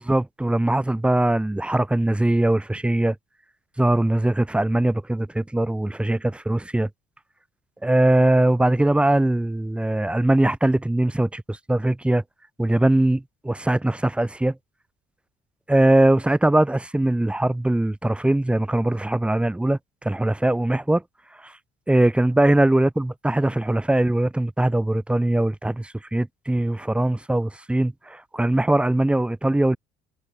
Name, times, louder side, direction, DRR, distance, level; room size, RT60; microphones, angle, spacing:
voice 1, 0.0-3.2 3.8-6.9 7.8-12.2 12.6-14.5 15.7-19.8 20.0-21.0 21.9-29.8, right 1 dB, 5° right, 3.7 m, -21 dB
cardioid pair, 130°, 17 cm